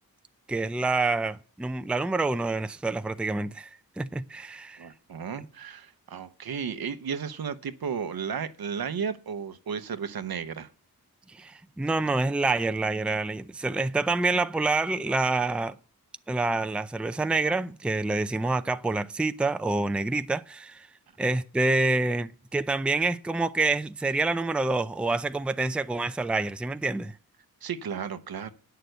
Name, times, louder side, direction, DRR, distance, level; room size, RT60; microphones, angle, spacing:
voice 1, 0.5-3.7 4.0-4.9 11.3-15.7 16.3-20.9 21.2-27.1, right 3 dB, 5° right, 0.4 m, -27 dB
voice 2, 4.8-10.7 27.6-28.5, right 6 dB, 75° right, 0.9 m, -34 dB
9.3 x 6.7 x 7.9 m
cardioid pair, 60°, 37 cm